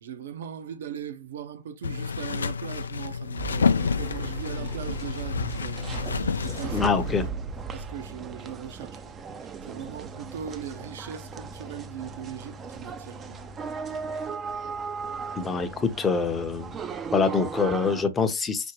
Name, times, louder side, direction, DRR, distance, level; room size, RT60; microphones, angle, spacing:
voice 1, 0.0-6.8 7.7-9.1 9.7-13.4, right 8 dB, 65° right, 0.7 m, -39 dB
sound 1, 1.8-7.3, left 6 dB, 80° left, 0.3 m, -29 dB
sound 2, 3.4-18.0, right 5 dB, 20° right, 0.4 m, -37 dB
voice 2, 6.7-7.3 15.4-16.8 17.1-18.7, left 5 dB, 15° left, 0.7 m, -25 dB
5.1 x 2.1 x 2.9 m
hypercardioid pair, 115°, 0 cm